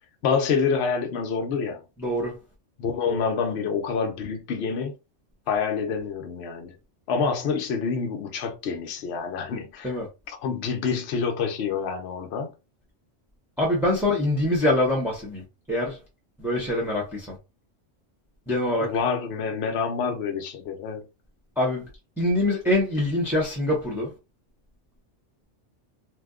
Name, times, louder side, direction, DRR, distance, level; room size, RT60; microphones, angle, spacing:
voice 1, 0.2-1.8 2.8-4.9 5.5-6.7 7.1-10.0 10.3-12.5 18.8-21.0, left 5 dB, 60° left, 0.9 m, -27 dB
voice 2, 2.0-2.4 3.1-3.2 9.8-10.1 13.6-16.0 16.4-17.4 18.5-19.0 21.6-21.9 22.2-24.1, left 1 dB, ahead, 0.7 m, -24 dB
2.7 x 2.2 x 3.6 m
omnidirectional pair, 1.3 m